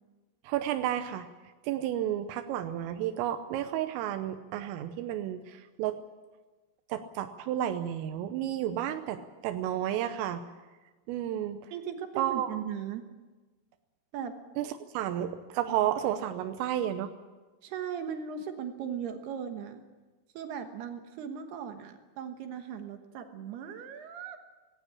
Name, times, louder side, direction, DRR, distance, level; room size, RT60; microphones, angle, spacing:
voice 1, 0.5-1.3 1.6-6.0 6.9-10.5 11.1-11.6 12.2-12.6 14.6-17.1, right 11 dB, 85° right, 8 dB, 3.5 m, -32 dB
voice 2, 11.7-13.1 14.1-14.4 17.6-19.8 20.3-24.4, right 8 dB, 65° right, 6 dB, 2.8 m, -38 dB
18.5 x 17.0 x 9.9 m, 1.2 s
omnidirectional pair, 5.8 m